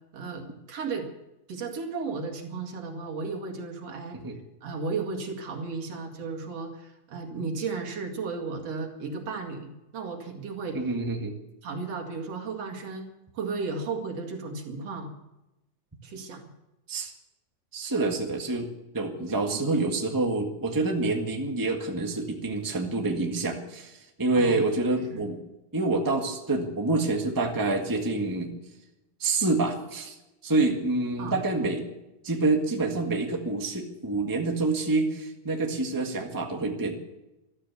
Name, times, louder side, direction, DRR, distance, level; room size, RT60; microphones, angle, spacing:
voice 1, 0.1-1.1 1.5-4.2 4.6-10.8 11.6-13.1 13.3-15.1 16.0-16.4 19.5-19.6 24.4-24.6 25.1-25.3 31.2-31.4, right 4 dB, 50° right, 3 dB, 3.0 m, -34 dB
voice 2, 10.7-11.3 16.9-17.1 17.7-18.7 18.9-25.4 25.7-28.5 29.2-30.2 30.4-31.8 32.2-37.0, right 2 dB, 25° right, 2 dB, 0.4 m, -27 dB
14.5 x 13.0 x 7.0 m, 0.93 s
omnidirectional pair, 3.9 m